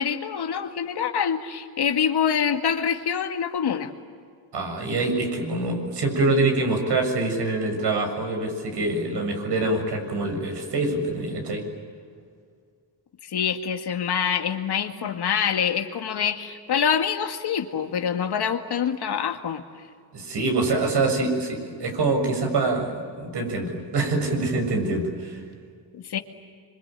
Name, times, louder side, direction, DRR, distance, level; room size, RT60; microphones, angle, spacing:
voice 1, 0.0-3.9 13.2-19.6 25.9-26.2, left 7 dB, 60° left, 6 dB, 2.2 m, -25 dB
voice 2, 4.5-11.6 20.1-25.4, right 2 dB, 60° right, 4 dB, 7.2 m, -25 dB
26.0 x 24.5 x 9.1 m, 2.1 s
cardioid pair, 95°, 45 cm